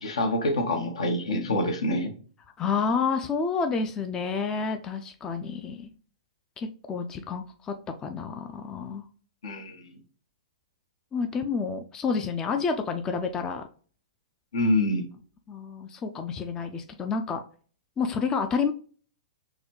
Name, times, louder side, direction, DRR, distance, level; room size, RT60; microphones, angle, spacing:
voice 1, 0.0-2.1 9.4-9.8 14.5-15.1, left 1 dB, 75° left, 4 dB, 1.0 m, -26 dB
voice 2, 2.6-5.9 6.6-7.7 8.0-9.0 11.1-13.7 15.5-17.4 18.0-18.7, left 5 dB, 20° left, 6 dB, 0.3 m, -29 dB
3.9 x 2.2 x 2.9 m, 0.42 s
hypercardioid pair, 120°, 3 cm